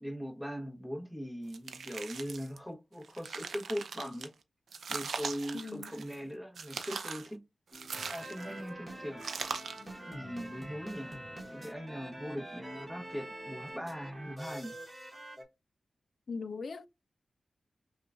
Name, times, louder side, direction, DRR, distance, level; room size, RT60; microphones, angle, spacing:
voice 1, 0.0-4.3 4.9-7.4 8.1-9.2 10.1-11.2 11.5-14.7, equal, ahead, 1.1 m, -40 dB
sound 1, 1.5-2.6 3.0-4.3 4.7-6.2 6.6-7.3 7.7-8.6 9.2-9.9, right 5 dB, 85° right, 0.5 m, -40 dB
voice 2, 5.5-5.9 16.3-16.9, left 4 dB, 60° left, 0.3 m, -39 dB
sound 2, 7.7-14.3, left 1 dB, 25° left, 1.2 m, -56 dB
sound 3, 7.9-15.4, right 1 dB, 20° right, 1.2 m, -46 dB
5.6 x 2.3 x 2.5 m
wide cardioid pair, 95°, 0 cm